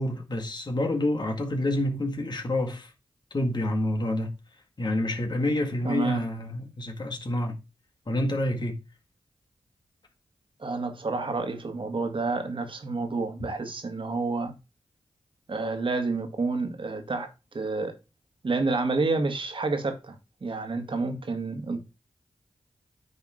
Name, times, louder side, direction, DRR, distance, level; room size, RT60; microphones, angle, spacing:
voice 1, 0.0-2.9 3.3-4.3 4.8-7.6 8.1-8.8, left 1 dB, 45° left, 1.8 m, -28 dB
voice 2, 5.8-6.2 10.6-14.5 15.5-17.3 17.5-17.9 18.4-20.2 20.4-21.8, right 3 dB, 55° right, 1.7 m, -29 dB
9.8 x 3.6 x 5.0 m
cardioid pair, 45°, 10 cm